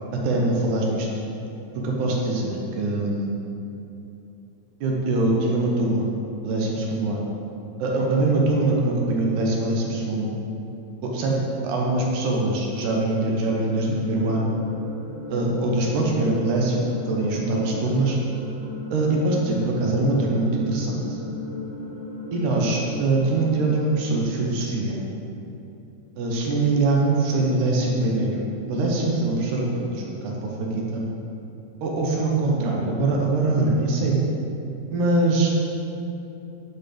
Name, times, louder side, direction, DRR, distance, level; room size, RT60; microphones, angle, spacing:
voice 1, 0.2-1.1 1.8-3.4 4.8-6.1 6.4-7.3 7.8-10.3 11.0-11.4 11.6-14.5 15.3-18.2 18.9-21.2 22.3-25.0 26.2-28.3 28.7-31.0 31.8-34.2 34.9-35.5, right 2 dB, 80° right, -2 dB, 2.3 m, -23 dB
sound 1, 13.4-23.8, left 2 dB, 45° left, 0.7 m, -36 dB
9.6 x 4.4 x 3.3 m, 2.9 s
omnidirectional pair, 3.5 m